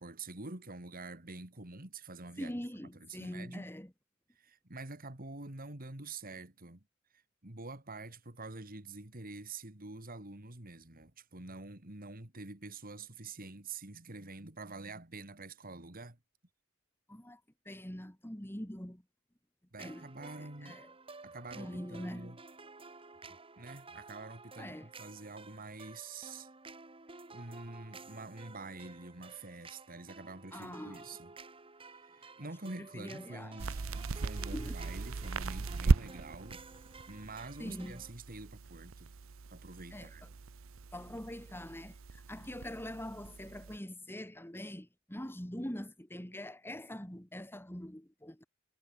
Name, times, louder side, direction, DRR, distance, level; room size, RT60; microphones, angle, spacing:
voice 1, 0.0-2.5 3.0-3.7 4.4-6.8 7.4-16.2 19.7-20.8 21.2-22.4 23.6-26.5 27.3-31.3 32.0-33.7 34.1-36.6 37.1-39.1 39.5-40.2, right 3 dB, 45° right, 3.0 m, -47 dB
voice 2, 2.4-3.9 17.1-17.4 17.7-19.0 19.8-20.9 21.5-22.4 24.6-24.9 30.5-31.0 32.9-33.8 34.5-34.8 37.6-38.0 39.9-40.1 40.9-48.4, left 1 dB, 10° left, 2.5 m, -43 dB
sound 1, 19.8-38.1, right 3 dB, 25° right, 2.5 m, -53 dB
sound 2, 33.6-43.8, right 3 dB, 70° right, 0.8 m, -37 dB
head